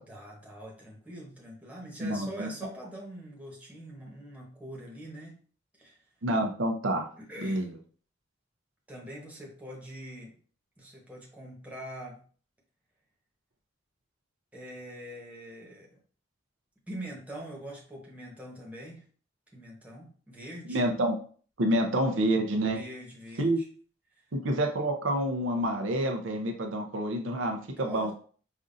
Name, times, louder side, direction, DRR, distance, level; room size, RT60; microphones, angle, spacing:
voice 1, 0.1-5.4 5.8-6.0 7.2-7.7 8.9-10.4 10.8-12.2 14.5-15.9 16.9-19.0 19.5-20.8 22.7-23.7 24.1-24.2 27.6-28.1, equal, 10° right, -3 dB, 1.1 m, -43 dB
voice 2, 2.0-2.5 6.2-7.1 7.4-7.7 20.7-21.1 21.6-22.8 23.4-23.6 24.3-28.1, right 1 dB, 85° right, 3 dB, 0.6 m, -28 dB
5.2 x 2.5 x 2.6 m, 0.43 s
head